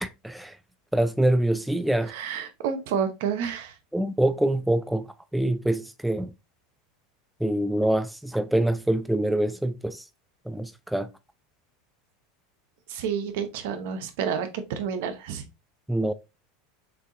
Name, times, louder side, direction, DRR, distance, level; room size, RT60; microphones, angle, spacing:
voice 1, 0.0-0.6 0.9-2.1 3.9-5.1 5.3-6.3 7.4-10.0 10.5-11.1 15.9-16.1, right 1 dB, 5° right, 0.4 m, -25 dB
voice 2, 2.1-3.7 12.9-15.4, right 7 dB, 70° right, 1.0 m, -29 dB
6.6 x 2.8 x 2.8 m
supercardioid pair, 120°, 0 cm